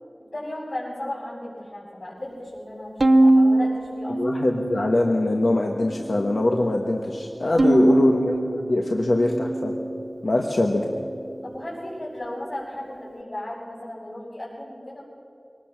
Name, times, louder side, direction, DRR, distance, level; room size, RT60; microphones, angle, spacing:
voice 1, 0.3-2.9 3.2-4.2 7.5-8.0 8.6-8.8 11.4-15.0, left 1 dB, 65° left, -10 dB, 5.9 m, -35 dB
Bowed string instrument, 3.0-5.4 5.8-6.6 7.6-10.1, right 1 dB, 65° right, 0.7 m, -22 dB
voice 2, 4.1-9.7 10.2-10.9, left 2 dB, 80° left, 1 dB, 1.3 m, -23 dB
23.5 x 19.0 x 5.9 m, 2.9 s
wide cardioid pair, 55°, 0 cm